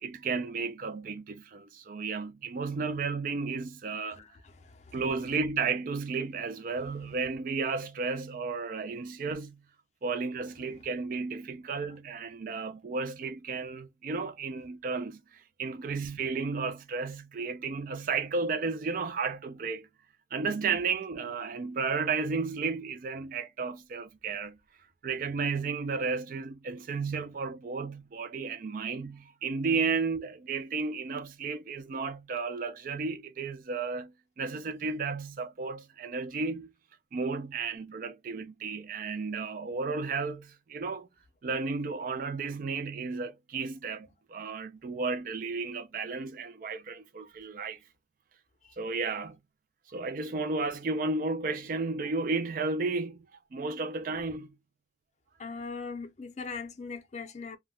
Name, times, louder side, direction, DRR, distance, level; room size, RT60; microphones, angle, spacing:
voice 1, 0.0-4.2 4.9-9.6 10.0-19.9 20.3-24.6 25.0-36.7 37.1-41.1 41.4-47.8 48.8-49.4 49.9-53.3 53.5-54.5, right 4 dB, 50° right, 0.3 m, -33 dB
voice 2, 4.1-5.0 48.6-48.7 55.4-57.6, left 4 dB, 40° left, 0.5 m, -40 dB
2.2 x 2.1 x 3.4 m
head